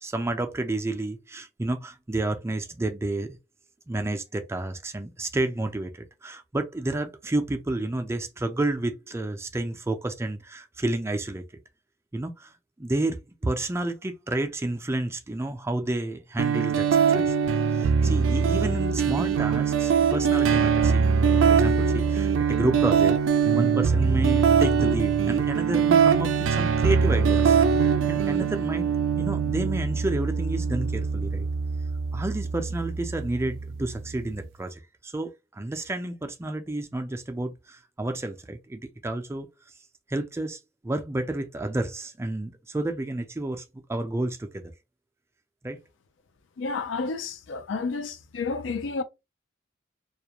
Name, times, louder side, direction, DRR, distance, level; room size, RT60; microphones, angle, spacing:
voice 1, 0.0-3.4 3.9-11.4 12.1-12.5 12.8-17.4 17.7-23.2 23.5-27.6 28.1-28.9 29.2-31.5 32.1-39.5 40.1-43.6 43.9-44.6 45.6-45.8, right 2 dB, 15° right, 0.4 m, -30 dB
sound 1, 16.4-34.3, right 6 dB, 90° right, 0.3 m, -23 dB
voice 2, 46.6-49.0, left 4 dB, 80° left, 0.5 m, -31 dB
2.3 x 2.1 x 2.9 m
head